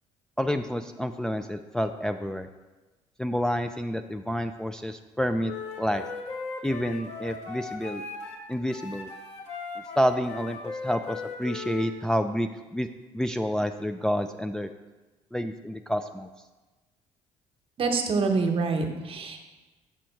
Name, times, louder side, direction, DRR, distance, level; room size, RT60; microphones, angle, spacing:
voice 1, 0.4-2.5 3.2-5.5 5.8-6.0 6.6-8.0 8.5-9.1 10.0-12.9 13.1-14.7 15.3-16.3, equal, 5° left, 6 dB, 0.3 m, -29 dB
Wind instrument woodwind instrument, 5.4-8.4 8.7-11.9, left 4 dB, 60° left, 1.3 m, -38 dB
voice 2, 17.8-19.4, right 4 dB, 45° right, 5 dB, 1.0 m, -26 dB
7.4 x 5.1 x 4.5 m, 1.2 s
cardioid pair, 80°, 13 cm